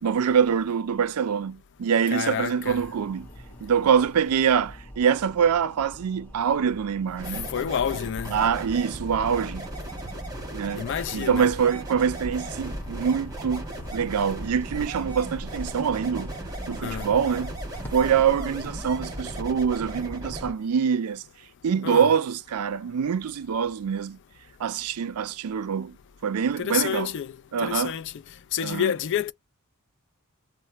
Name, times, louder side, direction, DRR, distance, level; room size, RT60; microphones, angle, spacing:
voice 1, 0.0-3.3 3.6-7.5 8.3-9.7 10.5-10.8 11.1-13.7 13.9-16.4 16.7-17.5 17.9-21.2 21.6-24.2 24.6-26.0 26.2-27.1 27.5-27.9 28.6-28.9, right 7 dB, 85° right, 0.4 m, -24 dB
voice 2, 2.1-2.8 7.5-8.3 10.8-11.5 16.8-17.1 21.8-22.1 26.6-27.3 27.6-28.1 28.5-29.3, left 9 dB, 55° left, 0.4 m, -28 dB
sound 1, 2.6-19.0, equal, 10° left, 1.2 m, -47 dB
sound 2, 7.2-20.5, right 1 dB, 15° right, 1.3 m, -36 dB
3.2 x 2.0 x 2.8 m
head